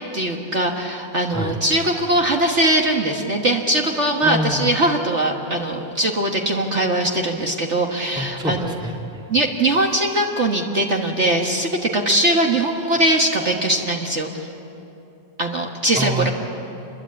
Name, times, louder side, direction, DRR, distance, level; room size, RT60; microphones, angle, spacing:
voice 1, 0.1-8.7 9.3-14.5 15.4-16.3, right 1 dB, 40° right, 1 dB, 1.7 m, -21 dB
voice 2, 4.2-4.7 8.2-9.2 16.0-16.3, equal, 5° right, 1 dB, 1.8 m, -26 dB
28.5 x 22.0 x 8.6 m, 2.9 s
omnidirectional pair, 1.9 m